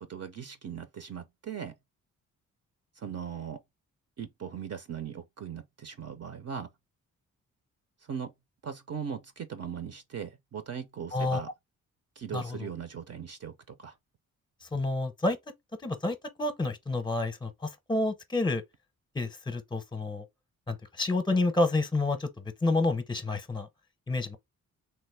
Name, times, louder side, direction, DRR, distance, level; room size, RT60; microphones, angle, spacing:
voice 1, 0.0-1.7 3.0-3.6 4.2-6.7 8.0-8.3 8.6-11.5 12.2-13.9, right 7 dB, 50° right, 0.6 m, -39 dB
voice 2, 12.3-12.7 14.7-15.4 15.8-18.6 19.1-20.2 20.7-23.7 24.1-24.4, left 2 dB, 15° left, 0.8 m, -29 dB
3.3 x 2.1 x 3.3 m
cardioid pair, 65°, 33 cm